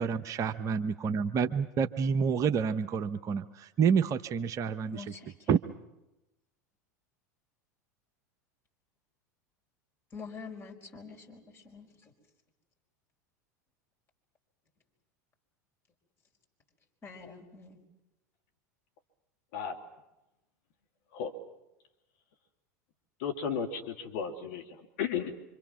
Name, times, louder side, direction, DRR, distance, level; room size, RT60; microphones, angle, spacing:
voice 1, 0.0-5.0 5.5-5.6, right 6 dB, 35° right, 9 dB, 0.9 m, -28 dB
voice 2, 4.9-5.5 10.1-11.9 17.0-17.8, left 5 dB, 25° left, 1 dB, 4.8 m, -46 dB
voice 3, 23.2-24.6 25.0-25.3, left 7 dB, 60° left, 3 dB, 2.3 m, -33 dB
26.0 x 25.5 x 6.0 m, 0.96 s
figure-of-eight pair, 85°, 9 cm